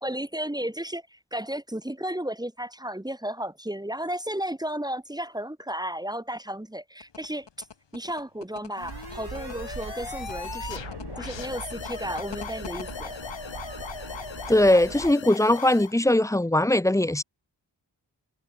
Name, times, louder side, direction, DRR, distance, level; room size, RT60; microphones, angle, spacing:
voice 1, 0.0-7.7 7.9-10.8 11.2-13.2, right 1 dB, 10° right, 1.5 m, -33 dB
sound 1, 7.0-12.9, left 6 dB, 70° left, 3.0 m, -44 dB
sound 2, 8.8-15.9, left 7 dB, 85° left, 2.4 m, -38 dB
sound 3, 8.8-15.1, right 7 dB, 65° right, 1.7 m, -41 dB
voice 2, 14.5-17.2, left 1 dB, 5° left, 0.6 m, -20 dB
wide cardioid pair, 85°, 44 cm